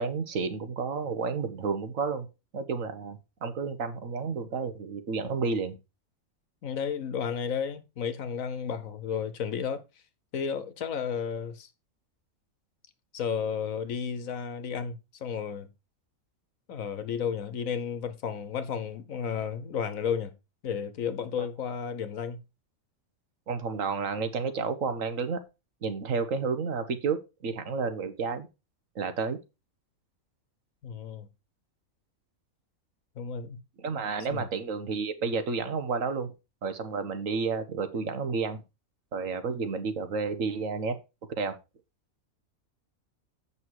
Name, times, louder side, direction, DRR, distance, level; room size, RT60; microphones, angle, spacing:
voice 1, 0.0-2.3 2.5-5.8 21.4-21.5 23.5-25.4 25.8-28.5 28.9-29.4 33.8-36.3 36.6-38.6 39.1-41.0 41.4-41.6, right 5 dB, 65° right, 1.5 m, -31 dB
voice 2, 6.6-9.8 10.3-11.7 13.1-14.9 15.2-15.7 16.7-20.3 20.6-22.4 30.8-31.3 33.2-33.6 34.3-34.5, left 7 dB, 70° left, 1.4 m, -32 dB
8.1 x 5.8 x 4.6 m
omnidirectional pair, 1.5 m